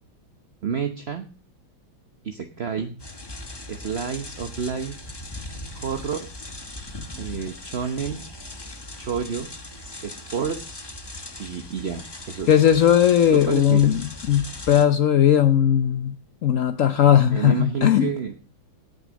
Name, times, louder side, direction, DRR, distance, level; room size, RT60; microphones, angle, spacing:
voice 1, 0.6-1.3 2.2-3.0 3.7-5.0 5.7-6.3 7.2-8.2 9.0-9.5 10.0-10.9 11.4-12.5 13.4-14.0 17.3-18.3, right 6 dB, 45° right, 7 dB, 0.9 m, -29 dB
sound 1, 3.0-14.9, left 2 dB, 15° left, 0.8 m, -39 dB
voice 2, 12.5-16.2 16.4-18.1, left 10 dB, 75° left, 10 dB, 0.7 m, -18 dB
18.5 x 6.5 x 6.3 m, 0.36 s
omnidirectional pair, 2.3 m